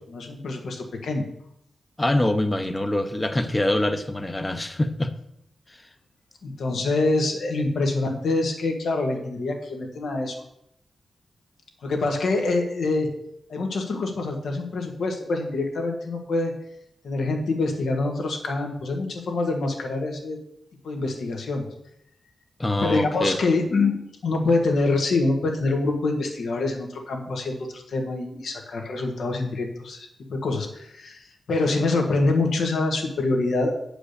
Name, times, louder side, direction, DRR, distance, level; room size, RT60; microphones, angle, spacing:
voice 1, 0.1-1.2 6.4-10.3 11.8-13.1 13.5-16.5 17.0-20.4 20.8-21.7 22.8-24.0 24.2-33.8, left 3 dB, 80° left, 3 dB, 1.6 m, -25 dB
voice 2, 2.0-5.1 22.6-23.4, left 1 dB, 20° left, 8 dB, 0.8 m, -24 dB
8.3 x 5.0 x 6.6 m, 0.78 s
cardioid pair, 90°, 0 cm